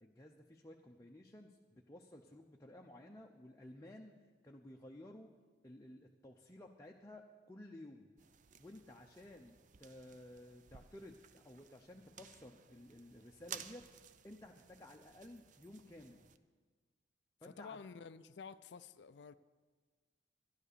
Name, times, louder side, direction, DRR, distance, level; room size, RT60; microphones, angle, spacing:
voice 1, 0.0-4.1 4.4-5.3 5.6-8.1 8.6-13.9 14.2-16.2 17.4-17.8, left 1 dB, 15° left, 0.7 m, -55 dB
sound 1, 8.2-16.4, right 8 dB, 45° right, 0.5 m, -56 dB
voice 2, 17.4-19.3, left 5 dB, 65° left, 0.4 m, -51 dB
12.5 x 11.0 x 6.8 m
head